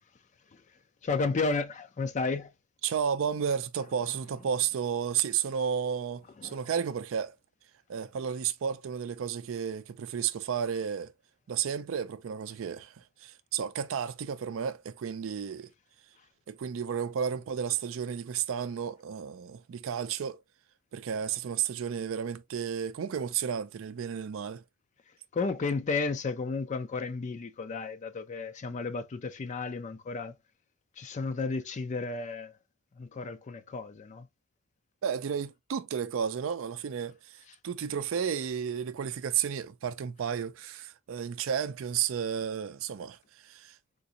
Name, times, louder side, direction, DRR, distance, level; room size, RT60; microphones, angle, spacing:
voice 1, 1.0-2.5 6.4-6.7 25.3-30.3 31.0-32.6 33.0-34.3 37.5-37.6, left 4 dB, 35° left, 0.4 m, -33 dB
voice 2, 2.8-7.3 7.9-11.1 11.5-15.7 16.5-20.4 20.9-24.6 35.0-43.8, right 8 dB, 70° right, 0.4 m, -32 dB
3.8 x 2.5 x 2.7 m
head